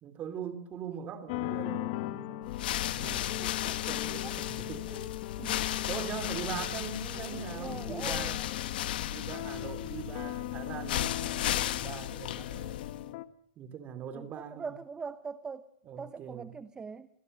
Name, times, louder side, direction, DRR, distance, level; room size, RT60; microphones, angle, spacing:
voice 1, 0.0-4.9 5.9-8.4 9.0-12.9 13.6-14.7 15.8-16.5, right 7 dB, 30° right, 3.2 m, -42 dB
sound 1, 1.3-13.2, left 17 dB, 50° left, 1.3 m, -39 dB
sound 2, 2.4-13.1, left 13 dB, 70° left, 1.5 m, -35 dB
voice 2, 3.4-4.4 4.9-5.1 5.4-5.7 7.0-8.4 8.8-8.9 14.1-15.7 16.0-17.1, right 5 dB, 15° right, 0.8 m, -43 dB
27.5 x 20.5 x 6.8 m
hypercardioid pair, 135°, 5 cm